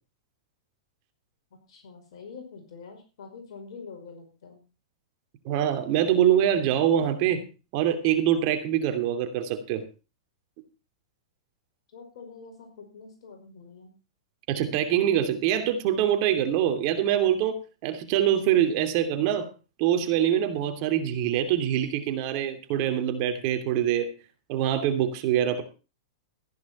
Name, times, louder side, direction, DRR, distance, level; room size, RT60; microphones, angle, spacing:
voice 1, 1.7-4.6 11.9-13.9, left 5 dB, 65° left, 4 dB, 5.3 m, -45 dB
voice 2, 5.4-7.4 7.7-9.8 14.5-19.5 19.8-24.1 24.5-25.6, right 10 dB, 50° right, 8 dB, 2.8 m, -24 dB
15.0 x 10.5 x 4.3 m, 0.32 s
hypercardioid pair, 120°, 3 cm